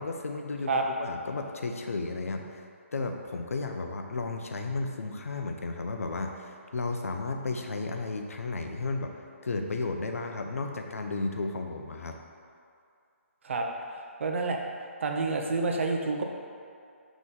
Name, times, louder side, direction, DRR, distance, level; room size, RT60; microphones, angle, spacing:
voice 1, 0.0-9.1 9.4-12.2, left 3 dB, 85° left, 4 dB, 0.5 m, -33 dB
voice 2, 14.2-14.6 15.0-16.2, right 3 dB, 60° right, 2 dB, 0.5 m, -28 dB
4.0 x 3.0 x 3.7 m, 2.4 s
hypercardioid pair, 150°, 8 cm